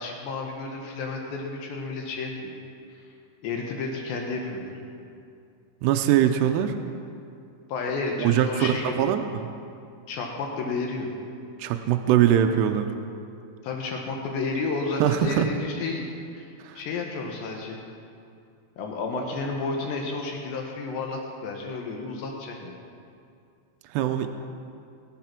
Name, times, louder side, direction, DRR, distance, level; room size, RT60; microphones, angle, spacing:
voice 1, 0.0-2.5 3.4-4.8 7.7-9.1 10.1-11.1 13.6-16.1 16.3-16.5 16.8-17.8 18.8-22.8, left 3 dB, 70° left, 1 dB, 3.3 m, -31 dB
voice 2, 5.8-6.7 8.2-9.5 11.6-12.9 15.0-15.5 16.6-16.8 23.9-24.3, right 10 dB, 85° right, 6 dB, 2.5 m, -22 dB
21.0 x 8.4 x 6.0 m, 2.5 s
omnidirectional pair, 5.5 m